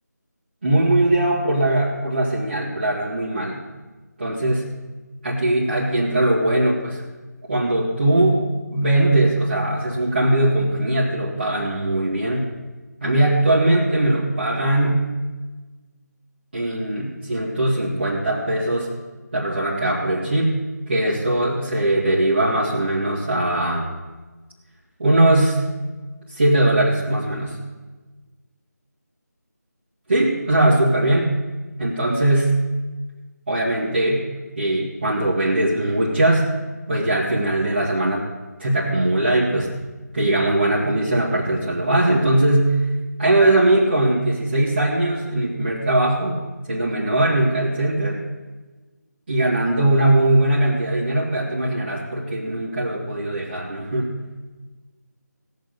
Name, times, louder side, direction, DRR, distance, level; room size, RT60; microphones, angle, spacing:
voice 1, 0.6-3.6 4.2-4.7 5.2-7.0 7.5-8.4 8.7-12.5 13.0-15.0 16.5-18.9 19.3-20.5 20.9-23.9 25.0-25.6 26.3-27.6 30.1-31.3 31.8-32.6 33.5-34.3 34.6-36.5 36.9-38.3 38.6-39.7 40.1-42.8 43.2-46.4 46.7-48.2 49.3-54.2, right 1 dB, 35° right, -8 dB, 2.2 m, -20 dB
17.0 x 6.7 x 6.7 m, 1.3 s
figure-of-eight pair, 165°, 10 cm